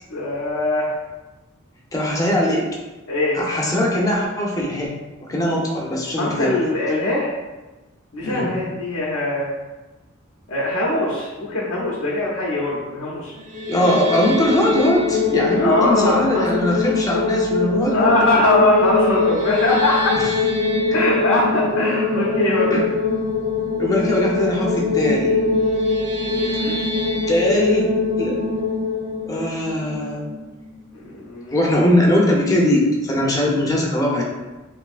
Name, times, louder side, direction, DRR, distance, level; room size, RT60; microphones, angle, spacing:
voice 1, 0.1-1.0 3.1-3.4 6.2-7.3 8.1-9.5 10.5-13.3 15.6-16.5 17.9-20.1 20.9-22.8 26.3-26.8 31.1-31.6, left 1 dB, 90° left, -6 dB, 0.6 m, -21 dB
voice 2, 1.9-2.7 3.3-4.9 5.2-6.6 8.2-8.6 13.7-18.1 20.2-20.3 20.9-21.0 22.7-22.9 23.8-25.5 27.2-27.9 28.2-28.4 29.3-30.3 31.5-34.2, left 1 dB, 15° left, -2 dB, 0.5 m, -20 dB
sound 1, 13.4-30.5, left 3 dB, 35° right, 0.5 m, -22 dB
3.2 x 2.6 x 2.4 m, 1.1 s
head